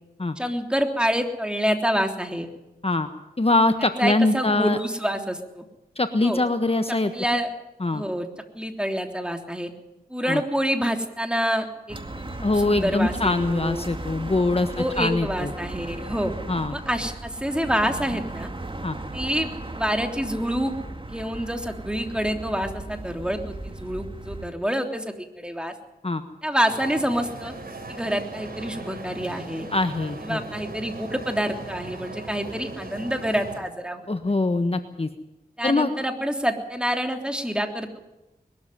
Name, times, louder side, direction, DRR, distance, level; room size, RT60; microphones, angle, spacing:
voice 1, 0.4-2.5 4.0-5.6 6.2-6.4 7.1-7.5 7.9-8.3 8.5-9.7 10.1-12.0 12.4-13.8 14.8-16.3 16.7-18.5 19.1-20.7 21.1-25.7 26.4-27.5 27.9-29.7 30.2-34.1 35.6-38.0, equal, 5° right, 4 dB, 3.4 m, -27 dB
voice 2, 3.4-4.8 6.0-7.1 7.8-8.0 10.3-10.4 12.4-15.5 16.5-16.7 18.8-19.0 26.0-26.2 29.7-30.4 34.1-35.1 35.6-35.9, left 2 dB, 40° left, 8 dB, 1.4 m, -23 dB
sound 1, 11.9-24.5, right 2 dB, 35° right, 2.1 m, -36 dB
sound 2, 26.7-33.6, right 2 dB, 70° right, 4.5 m, -38 dB
21.5 x 13.0 x 9.5 m, 0.96 s
cardioid pair, 40°, 16 cm